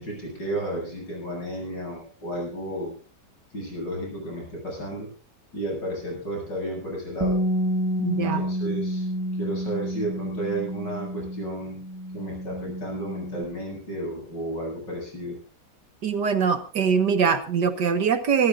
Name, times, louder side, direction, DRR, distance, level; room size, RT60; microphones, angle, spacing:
voice 1, 0.0-2.9 3.5-5.1 5.5-7.4 8.1-9.1 9.4-11.8 12.1-15.4, right 1 dB, 80° left, -1 dB, 8.8 m, -32 dB
Bass guitar, 7.2-13.5, equal, 15° right, 1.4 m, -29 dB
voice 2, 8.0-8.4 16.0-18.5, right 6 dB, 75° right, 9 dB, 2.1 m, -23 dB
26.0 x 14.0 x 2.6 m, 0.35 s
omnidirectional pair, 1.9 m